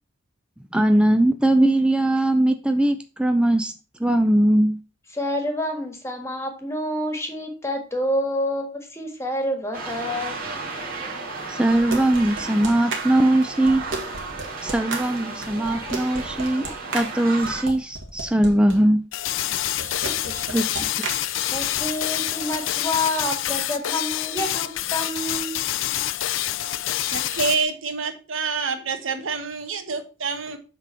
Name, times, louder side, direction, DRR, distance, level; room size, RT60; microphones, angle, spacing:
voice 1, 0.7-3.7 4.0-4.8 11.5-13.8 14.6-16.7 16.9-19.0 20.5-20.7, right 1 dB, 5° right, 7 dB, 0.4 m, -20 dB
voice 2, 5.1-10.4 19.8-20.6 21.5-25.6, left 1 dB, 15° left, 4 dB, 1.6 m, -28 dB
sound 1, 9.7-17.6, right 3 dB, 50° right, 2.1 m, -33 dB
sound 2, 11.7-18.8 19.5-21.8, right 3 dB, 70° right, 1.9 m, -34 dB
sound 3, 19.1-27.6, left 13 dB, 75° left, 0.5 m, -27 dB
voice 3, 27.1-30.6, right 4 dB, 90° right, 8 dB, 1.2 m, -27 dB
8.2 x 3.8 x 5.6 m, 0.35 s
head